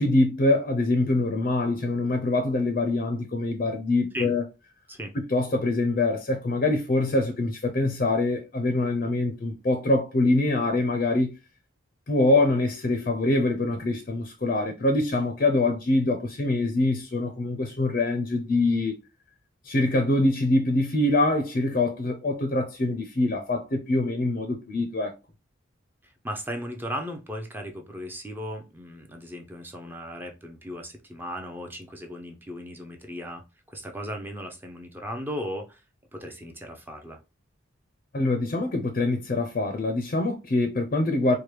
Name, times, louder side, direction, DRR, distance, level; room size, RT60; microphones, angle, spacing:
voice 1, 0.0-4.4 5.3-11.3 12.1-19.0 19.6-25.1 38.1-41.4, left 2 dB, 40° left, 0.5 m, -24 dB
voice 2, 26.0-33.4 33.7-35.8 36.1-37.2, equal, 10° right, 0.5 m, -36 dB
4.5 x 2.2 x 3.2 m
head